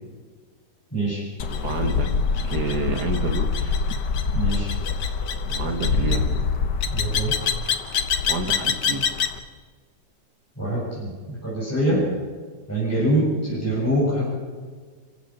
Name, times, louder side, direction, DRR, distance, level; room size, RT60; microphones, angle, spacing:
voice 1, 0.9-1.2 4.3-4.7 6.9-7.3 10.6-12.0 12.7-14.3, right 1 dB, 10° left, -8 dB, 7.5 m, -24 dB
sound 1, 1.4-9.4, left 5 dB, 85° left, 1.9 m, -24 dB
voice 2, 1.5-2.1 2.4-3.8 5.5-6.4 8.3-9.1 11.9-12.1, right 3 dB, 70° right, 5 dB, 3.0 m, -29 dB
27.5 x 15.5 x 7.4 m, 1.5 s
omnidirectional pair, 1.8 m